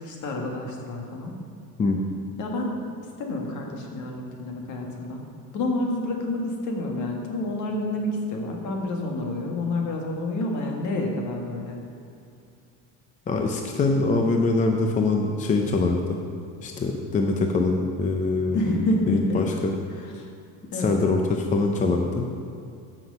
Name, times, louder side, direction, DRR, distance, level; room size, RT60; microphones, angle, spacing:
voice 1, 0.0-1.3 2.4-2.8 3.2-5.2 5.5-11.8 18.5-19.5 19.9-20.3 20.7-21.0, left 1 dB, 55° left, 1 dB, 1.9 m, -28 dB
voice 2, 13.3-16.2 16.6-18.6 19.1-19.8 20.7-22.3, left 3 dB, 20° left, 3 dB, 0.6 m, -23 dB
13.5 x 6.1 x 5.4 m, 2.4 s
cardioid pair, 155°, 36 cm